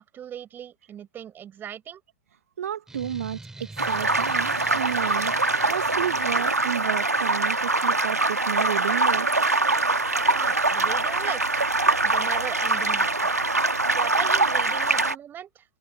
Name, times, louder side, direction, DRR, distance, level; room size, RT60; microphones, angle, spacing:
voice 1, 0.0-2.0 10.3-11.7 12.0-13.4 13.9-15.6, right 10 dB, 25° right, 6.2 m, -38 dB
voice 2, 2.6-9.6, right 9 dB, 65° right, 1.5 m, -32 dB
sound 1, 2.9-7.3, right 2 dB, 5° right, 4.0 m, -45 dB
sound 2, 3.8-15.1, right 2 dB, 85° right, 1.8 m, -23 dB
figure-of-eight pair, 100°, 8 cm